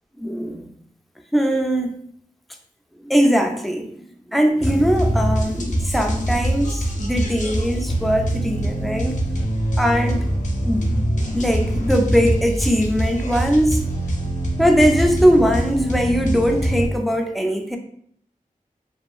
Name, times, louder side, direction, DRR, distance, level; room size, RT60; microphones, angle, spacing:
voice 1, 0.2-0.7 1.3-2.0 3.0-4.0 4.3-9.2 9.8-10.3 10.7-10.9 11.3-13.8 14.6-17.8, equal, ahead, 4 dB, 0.3 m, -20 dB
sound 1, 4.6-16.9, right 1 dB, 60° left, 0.5 m, -23 dB
2.9 x 2.3 x 2.3 m, 0.64 s
wide cardioid pair, 65°, 14 cm